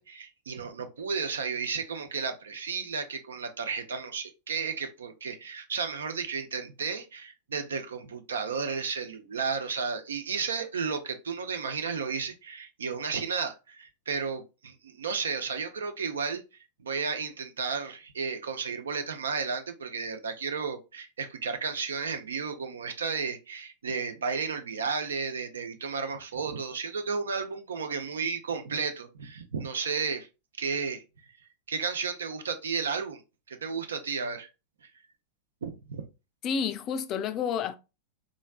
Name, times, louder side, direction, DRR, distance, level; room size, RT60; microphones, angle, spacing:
voice 1, 0.0-16.4 16.8-30.3 30.6-31.0 31.7-33.2 33.5-34.5 35.6-36.1, right 5 dB, 65° right, 0.6 m, -33 dB
voice 2, 36.4-37.8, left 7 dB, 35° left, 0.3 m, -30 dB
3.7 x 3.1 x 2.3 m
figure-of-eight pair, 90°, 0 cm